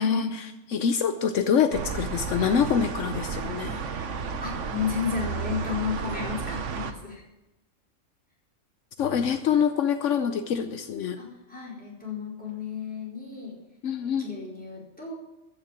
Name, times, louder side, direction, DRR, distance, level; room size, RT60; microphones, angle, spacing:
voice 1, 0.0-3.8 9.0-11.2 13.8-14.2, left 7 dB, 75° left, 9 dB, 1.1 m, -25 dB
sound 1, 1.7-6.9, right 6 dB, 70° right, 1.3 m, -32 dB
voice 2, 4.4-7.2 11.2-13.6 14.0-15.1, left 7 dB, 5° left, -6 dB, 4.5 m, -33 dB
14.0 x 6.7 x 8.4 m, 0.99 s
omnidirectional pair, 1.3 m